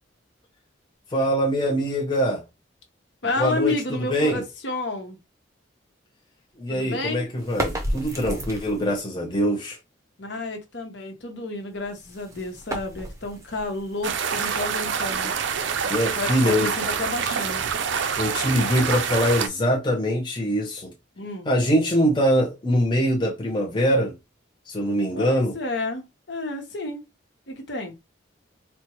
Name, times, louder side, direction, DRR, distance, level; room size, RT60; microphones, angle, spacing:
voice 1, 1.1-2.4 3.4-4.4 6.6-9.8 15.9-16.7 18.2-20.9 21.5-24.1 24.7-25.6, equal, 25° left, 0.6 m, -23 dB
voice 2, 3.2-5.2 6.7-7.3 10.2-15.3 16.1-17.7 21.2-21.5 25.1-27.0 27.5-27.9, left 2 dB, 65° left, 1.1 m, -31 dB
sound 1, 7.4-9.0 11.7-14.7, equal, 15° right, 0.6 m, -33 dB
sound 2, 14.0-19.5, right 6 dB, 70° right, 0.5 m, -26 dB
4.4 x 2.2 x 3.0 m
head